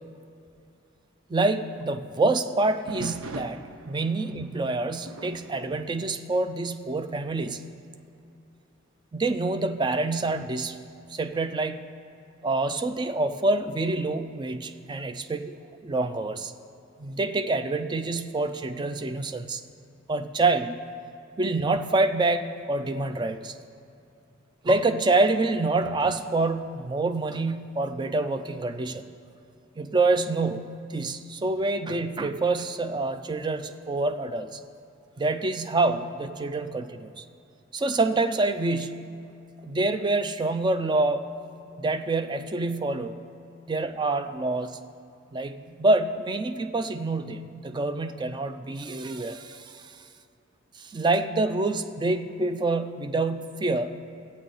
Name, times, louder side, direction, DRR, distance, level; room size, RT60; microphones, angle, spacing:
voice 1, 1.3-7.7 9.1-10.8 11.1-11.9 12.4-16.5 17.0-19.6 20.1-20.8 21.4-23.5 24.6-29.0 29.8-34.6 35.2-37.2 37.7-39.2 39.6-41.3 41.8-43.2 43.7-44.8 45.3-49.9 50.8-54.1, right 2 dB, 20° right, 9 dB, 0.3 m, -27 dB
sound 1, 2.9-7.0 7.3-7.7 8.3-8.4 9.1-11.8 13.7-14.2, right 3 dB, 85° right, 0.5 m, -44 dB
14.0 x 8.5 x 3.9 m, 2.7 s
head